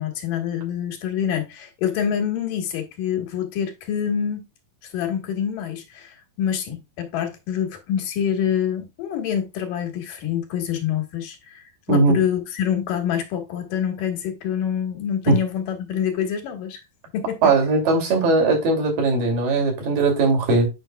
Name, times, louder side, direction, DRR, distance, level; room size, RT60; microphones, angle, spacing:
voice 1, 0.0-4.4 4.9-16.8 17.1-17.5, left 9 dB, 70° left, 3.0 m, -26 dB
voice 2, 17.4-20.7, right 3 dB, 70° right, 4.3 m, -19 dB
8.9 x 5.6 x 2.2 m
omnidirectional pair, 4.1 m